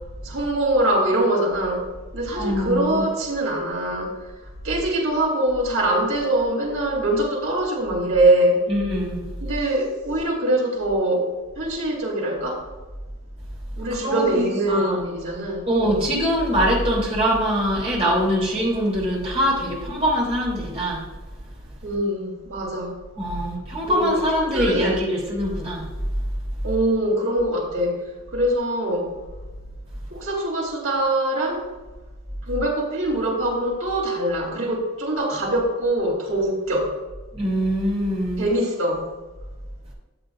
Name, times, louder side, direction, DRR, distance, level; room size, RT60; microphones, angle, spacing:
voice 1, 0.2-1.8 2.1-4.2 4.6-8.6 9.4-12.6 13.8-16.0 21.8-23.0 23.8-24.2 24.5-25.0 26.6-28.1 28.3-29.1 30.1-31.6 32.5-36.9 38.4-39.0, right 1 dB, 85° right, -2 dB, 3.3 m, -23 dB
voice 2, 2.3-3.1 8.7-9.2 14.0-15.0 15.7-21.1 23.2-25.9 37.3-38.4, equal, 30° right, -3 dB, 3.0 m, -23 dB
13.5 x 7.8 x 2.5 m, 1.2 s
head